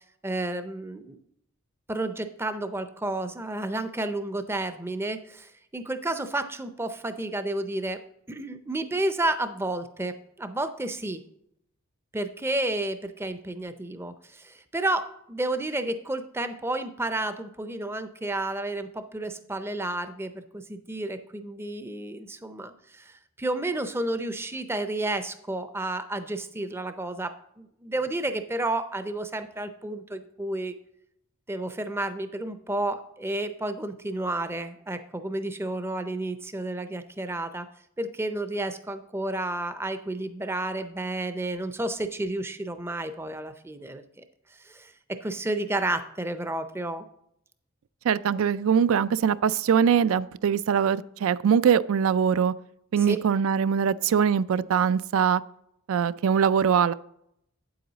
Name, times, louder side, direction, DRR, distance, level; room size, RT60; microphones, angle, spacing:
voice 1, 0.2-1.2 1.9-8.0 8.3-11.2 12.1-30.7 31.5-37.7 38.0-44.2 44.5-47.0 53.0-53.2, right 2 dB, 10° right, 0.5 m, -31 dB
voice 2, 48.1-52.5 52.9-55.4 55.9-56.9, right 7 dB, 70° right, 0.3 m, -22 dB
8.8 x 7.8 x 4.0 m
head